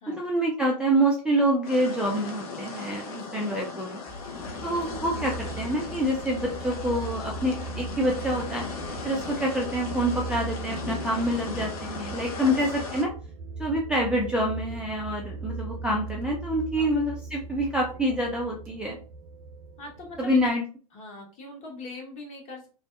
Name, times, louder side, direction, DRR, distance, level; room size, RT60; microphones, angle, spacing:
voice 1, 0.1-4.0 4.6-8.7 9.0-13.1 13.6-19.0 20.2-20.6, right 1 dB, 5° right, -2 dB, 0.3 m, -26 dB
sound 1, 1.6-13.0, left 4 dB, 70° left, 0.7 m, -37 dB
sound 2, 4.1-9.6, left 1 dB, 20° left, 0.7 m, -46 dB
sound 3, 4.3-20.5, right 4 dB, 65° right, 0.7 m, -39 dB
voice 2, 19.8-20.3 20.9-22.7, left 2 dB, 35° left, 0 dB, 1.1 m, -41 dB
2.6 x 2.1 x 2.3 m, 0.36 s
hypercardioid pair, 110°, 20 cm